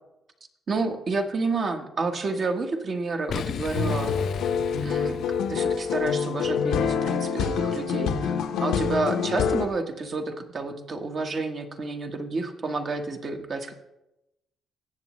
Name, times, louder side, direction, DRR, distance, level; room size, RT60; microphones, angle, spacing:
voice 1, 0.7-4.1 4.8-5.2 5.5-13.7, right 3 dB, 50° right, 5 dB, 1.3 m, -30 dB
Boom, 3.3-6.3, left 8 dB, 60° left, 0.3 m, -36 dB
sound 1, 3.7-9.7, left 6 dB, 90° left, 1.0 m, -26 dB
17.5 x 7.3 x 3.1 m, 0.90 s
cardioid pair, 90°, 0 cm